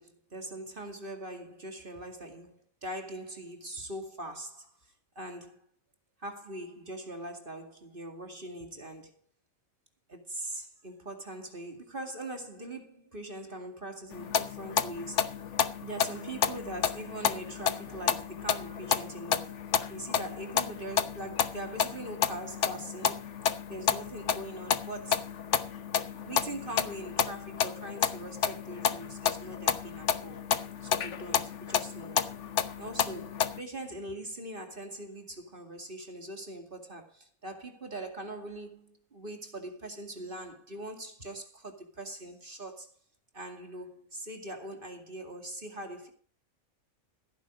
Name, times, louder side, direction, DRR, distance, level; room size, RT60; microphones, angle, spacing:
voice 1, 0.0-5.6 6.2-9.2 10.1-15.3 15.8-23.2 23.7-25.4 26.2-30.4 30.8-32.3 32.8-42.9 43.3-46.1, right 1 dB, 40° right, 2.4 m, -42 dB
sound 1, 14.1-33.6, left 8 dB, 60° left, 1.1 m, -31 dB
15.5 x 9.2 x 5.0 m
omnidirectional pair, 1.5 m